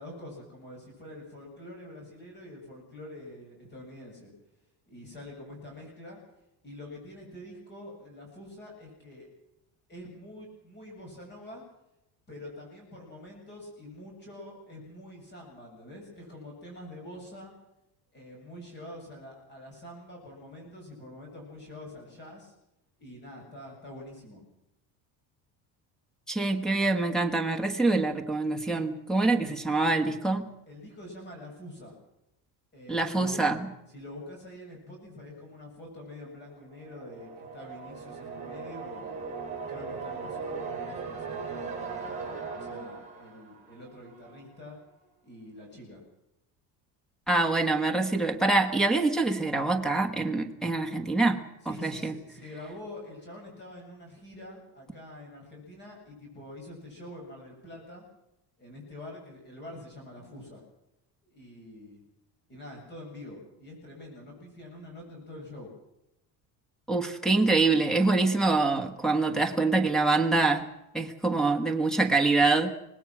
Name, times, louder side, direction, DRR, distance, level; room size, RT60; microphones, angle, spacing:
voice 1, 0.0-4.3 4.9-6.2 6.6-9.3 9.9-11.6 12.3-17.5 18.1-22.5 23.0-24.4 30.7-31.9 32.7-33.4 33.9-39.2 39.7-44.8 45.2-46.0 51.6-58.0 58.6-60.6 61.3-62.0 62.5-65.7, left 1 dB, 25° left, 0 dB, 7.5 m, -46 dB
voice 2, 26.3-30.5 32.9-33.6 47.3-51.4 51.7-52.1 66.9-70.6 70.9-72.7, right 3 dB, ahead, 0 dB, 1.4 m, -25 dB
sound 1, 36.7-44.5, right 5 dB, 20° right, 6.3 m, -39 dB
25.0 x 19.5 x 6.1 m, 0.85 s
cardioid pair, 175°, 40 cm